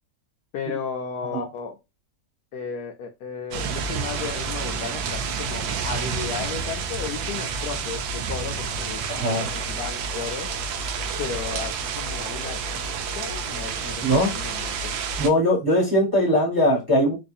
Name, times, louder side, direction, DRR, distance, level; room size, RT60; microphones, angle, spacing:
voice 1, 0.5-1.8 2.5-10.5 11.2-14.9, left 6 dB, 70° left, 0.9 m, -34 dB
sound 1, 3.5-15.3, right 5 dB, 80° right, 1.3 m, -29 dB
voice 2, 9.1-9.5 14.0-14.4 15.2-17.2, equal, 15° right, 1.0 m, -20 dB
3.9 x 2.6 x 2.6 m
omnidirectional pair, 2.2 m